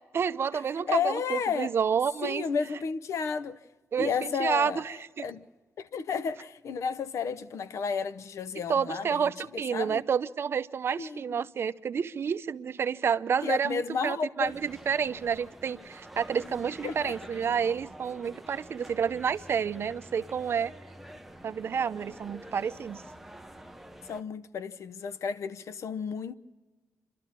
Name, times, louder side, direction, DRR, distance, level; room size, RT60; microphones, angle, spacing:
voice 1, 0.1-2.4 3.9-5.2 8.7-20.7 21.4-23.0, right 7 dB, 50° right, 0.7 m, -29 dB
voice 2, 0.9-1.7 2.2-3.6 4.0-5.5 5.8-10.0 11.0-11.4 13.4-14.5 16.8-17.1 24.1-26.4, left 6 dB, 65° left, 0.8 m, -32 dB
sound 1, 14.4-24.2, right 1 dB, 5° right, 0.8 m, -47 dB
28.0 x 12.5 x 7.3 m
cardioid pair, 120°, 5 cm